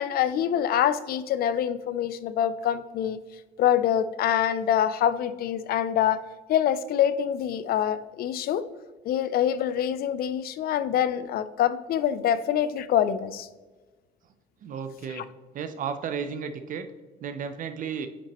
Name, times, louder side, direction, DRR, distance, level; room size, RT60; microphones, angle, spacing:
voice 1, 0.0-3.2 3.6-6.2 6.5-8.6 9.0-13.5 15.1-15.2, left 10 dB, 65° left, 14 dB, 0.5 m, -25 dB
voice 2, 14.6-15.2 15.5-16.9 17.2-18.1, right 6 dB, 50° right, 9 dB, 0.6 m, -33 dB
9.6 x 5.9 x 3.0 m, 1.3 s
cardioid pair, 110°, 17 cm